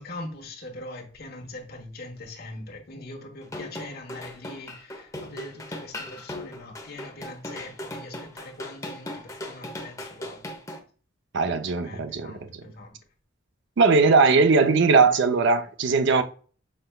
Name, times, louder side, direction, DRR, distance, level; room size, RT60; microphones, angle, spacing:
voice 1, 0.0-10.4 11.8-13.0, left 2 dB, 55° left, 1.1 m, -41 dB
sound 1, 3.4-10.8, left 1 dB, 15° left, 0.8 m, -38 dB
voice 2, 11.3-12.5 13.8-16.2, right 4 dB, 65° right, 0.5 m, -19 dB
5.9 x 3.3 x 2.2 m
head